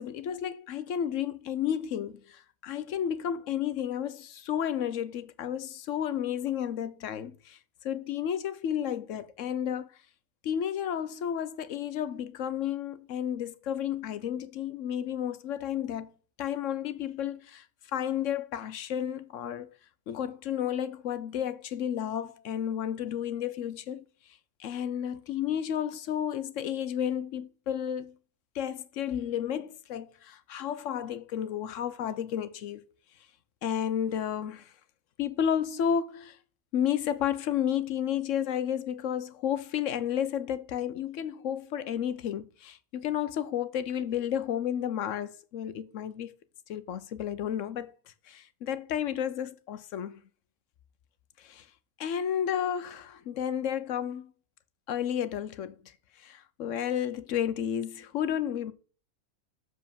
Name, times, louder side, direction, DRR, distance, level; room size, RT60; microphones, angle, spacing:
voice 1, 0.0-10.0 10.4-16.1 16.4-17.7 17.9-19.7 20.1-24.1 24.6-28.2 28.5-32.8 33.6-34.7 35.2-36.4 36.7-46.3 46.7-47.9 48.3-50.2 51.4-51.7 52.0-54.3 54.9-58.7, left 9 dB, 65° left, 1.0 m, -32 dB
6.9 x 5.2 x 7.0 m
omnidirectional pair, 1.5 m